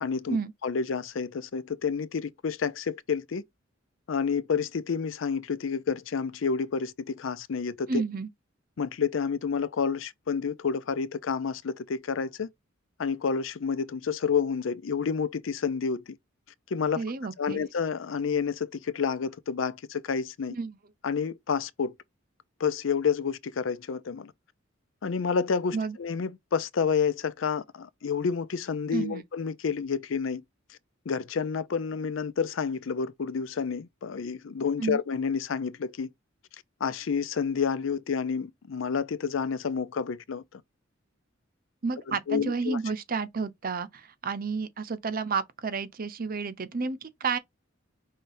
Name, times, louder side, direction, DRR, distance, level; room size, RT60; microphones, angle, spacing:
voice 1, 0.0-0.4 0.6-3.4 4.1-8.0 8.8-12.5 13.0-16.2 16.7-17.0 17.4-20.6 21.0-22.0 22.6-24.3 25.0-30.4 31.1-36.1 36.8-40.6 42.1-42.8, left 6 dB, 70° left, 0.5 m, -29 dB
voice 2, 7.9-8.3 17.0-17.6 20.5-20.8 25.7-26.0 28.9-29.2 34.8-35.0 41.8-47.4, right 4 dB, 45° right, 0.7 m, -31 dB
5.7 x 3.3 x 2.6 m
head